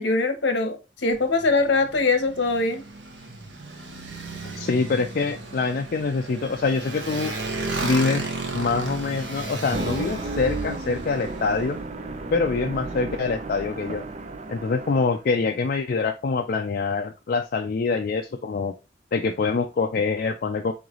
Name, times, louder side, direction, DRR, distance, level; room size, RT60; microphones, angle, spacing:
voice 1, 0.0-2.8, left 3 dB, 75° left, 7 dB, 0.9 m, -22 dB
Motorcycle, 1.0-11.7, right 3 dB, 75° right, 0.9 m, -34 dB
voice 2, 4.5-7.3 7.8-8.2 8.5-11.8 12.3-14.0 14.5-18.7 19.1-20.7, left 4 dB, 50° left, 4 dB, 0.4 m, -25 dB
sound 1, 9.6-15.3, right 3 dB, 40° right, 0.5 m, -33 dB
3.9 x 3.2 x 3.6 m, 0.28 s
head